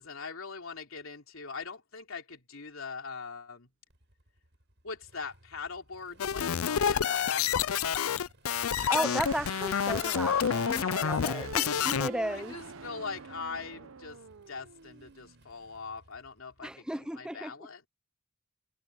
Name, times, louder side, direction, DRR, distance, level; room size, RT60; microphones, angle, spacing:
voice 1, 0.0-3.7 4.8-8.2 10.9-11.5 12.2-14.2 14.5-17.9, left 4 dB, 75° left, 3.2 m, -42 dB
Motorcycle, 3.9-16.7, right 1 dB, 60° right, 7.6 m, -62 dB
sound 1, 6.2-12.1, left 8 dB, 90° left, 0.5 m, -28 dB
sound 2, 8.6-15.4, right 5 dB, 75° right, 0.8 m, -45 dB
voice 2, 8.9-12.6 16.6-17.5, right 1 dB, 5° right, 0.7 m, -34 dB
head